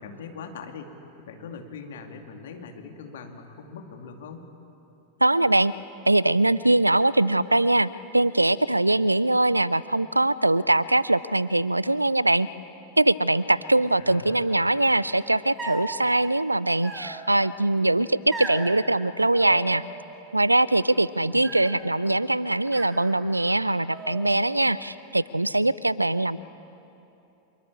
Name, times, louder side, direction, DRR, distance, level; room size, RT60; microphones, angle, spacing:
voice 1, 0.0-4.5 14.0-14.6 21.2-21.7, left 5 dB, 60° left, 5 dB, 2.5 m, -42 dB
voice 2, 5.2-5.7 6.1-12.5 13.0-19.8 20.3-26.4, right 2 dB, 85° right, 20 dB, 0.5 m, -22 dB
sound 1, 15.6-16.0 16.8-17.5 18.3-18.7 19.3-20.1 20.4-21.0 21.4-22.0 22.7-23.6 23.9-24.6, right 3 dB, 15° right, 3.5 m, -38 dB
25.0 x 22.5 x 8.5 m, 2.9 s
figure-of-eight pair, 90°, 0 cm